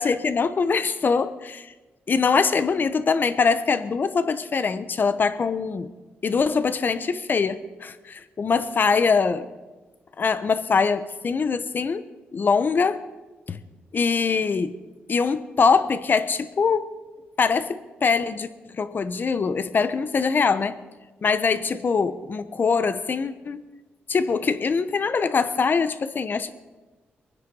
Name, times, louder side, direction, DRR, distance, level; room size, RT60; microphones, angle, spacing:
voice 1, 0.0-1.7 2.1-5.9 6.2-9.5 10.2-12.0 12.3-13.0 13.5-13.6 13.9-14.7 15.1-16.9 17.4-20.8 21.2-23.6 24.1-26.5, left 5 dB, 50° left, 12 dB, 1.0 m, -23 dB
22.5 x 9.8 x 5.5 m, 1.2 s
cardioid pair, 70°, 4 cm